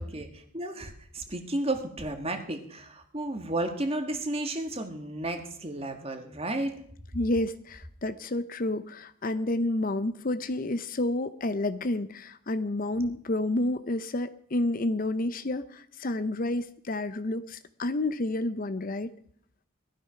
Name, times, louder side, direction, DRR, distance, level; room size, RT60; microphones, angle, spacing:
voice 1, 0.0-6.8, right 1 dB, 25° right, 6 dB, 1.7 m, -33 dB
voice 2, 7.1-19.1, left 2 dB, 40° left, 12 dB, 0.6 m, -30 dB
18.5 x 12.5 x 5.8 m, 0.64 s
head